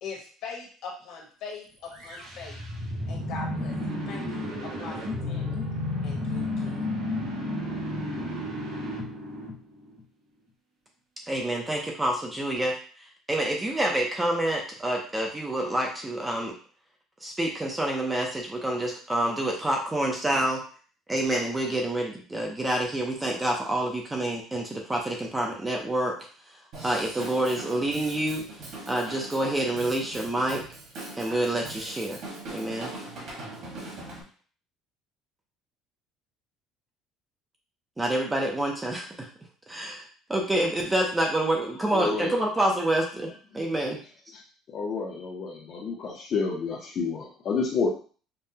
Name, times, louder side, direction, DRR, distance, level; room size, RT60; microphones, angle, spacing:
voice 1, 0.0-2.6 3.1-5.6 6.0-6.9, left 5 dB, 55° left, -1 dB, 1.2 m, -41 dB
sound 1, 1.9-10.0, left 1 dB, 85° right, 1.9 m, -32 dB
voice 2, 11.3-16.6 17.2-20.6 21.1-26.2 26.8-28.5 28.9-30.6 31.1-32.2 32.5-32.9 38.0-39.3 39.7-44.0, right 1 dB, 10° right, 0 dB, 0.5 m, -27 dB
Drum kit / Drum, 26.7-34.2, right 2 dB, 50° right, 1.3 m, -41 dB
voice 3, 41.9-42.3 44.7-47.9, left 5 dB, 30° left, -5 dB, 0.6 m, -29 dB
5.3 x 2.2 x 2.7 m, 0.42 s
cardioid pair, 180°, 0 cm